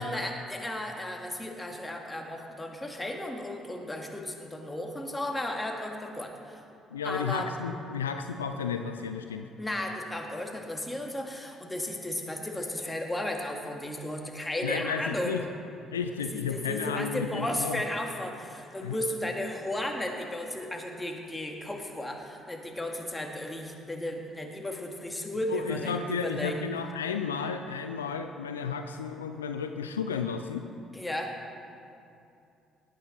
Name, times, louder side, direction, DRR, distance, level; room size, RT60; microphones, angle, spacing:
voice 1, 0.0-6.6 7.0-7.5 9.6-15.5 16.3-26.7 30.9-31.3, left 1 dB, 15° left, 2 dB, 2.0 m, -34 dB
voice 2, 6.9-9.5 14.6-15.4 15.9-17.8 18.8-19.0 25.5-30.7, left 6 dB, 85° left, 7 dB, 0.4 m, -33 dB
18.0 x 9.1 x 4.2 m, 2.7 s
figure-of-eight pair, 50°, 0 cm